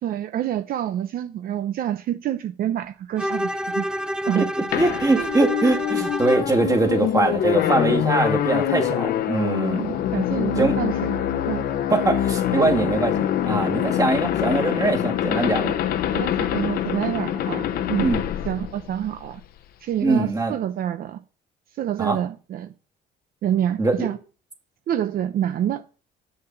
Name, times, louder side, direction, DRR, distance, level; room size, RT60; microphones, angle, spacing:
voice 1, 0.0-3.8 4.3-4.5 5.2-5.3 9.7-11.1 11.5-11.7 12.5-12.7 15.6-15.7 16.1-18.1 18.4-19.4 19.8-21.2 21.8-22.7 23.4-24.2 24.9-25.9, right 11 dB, 60° right, 0.7 m, -27 dB
Bowed string instrument, 3.2-6.6, equal, 5° right, 0.7 m, -28 dB
sound 1, 4.7-19.4, left 10 dB, 65° left, 0.9 m, -24 dB
voice 2, 4.8-10.0 10.6-10.8 11.9-15.8 18.0-18.2 20.0-20.6 22.0-22.2 23.8-24.1, right 3 dB, 20° right, 2.0 m, -22 dB
8.1 x 6.6 x 5.8 m
cardioid pair, 110°, 17 cm